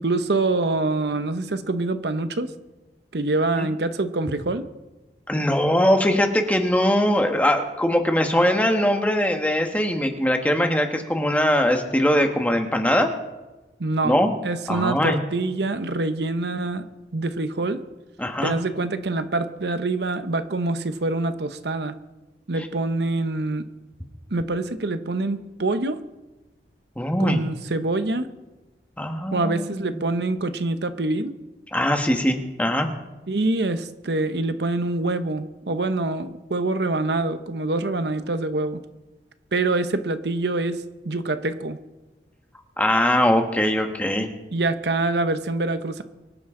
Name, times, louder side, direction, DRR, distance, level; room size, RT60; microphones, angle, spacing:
voice 1, 0.0-2.5 3.1-4.7 13.8-14.2 14.4-17.8 18.4-22.0 22.5-23.7 24.3-26.0 27.2-28.3 29.3-31.3 33.3-38.8 39.5-41.8 44.5-46.0, right 2 dB, 75° right, 10 dB, 0.9 m, -25 dB
voice 2, 5.3-13.1 14.0-14.3 14.7-15.2 18.2-18.5 22.6-22.7 27.0-27.4 29.0-29.7 31.7-32.9 42.8-44.3, equal, 10° left, 4 dB, 1.4 m, -21 dB
24.0 x 11.5 x 3.8 m, 1.1 s
head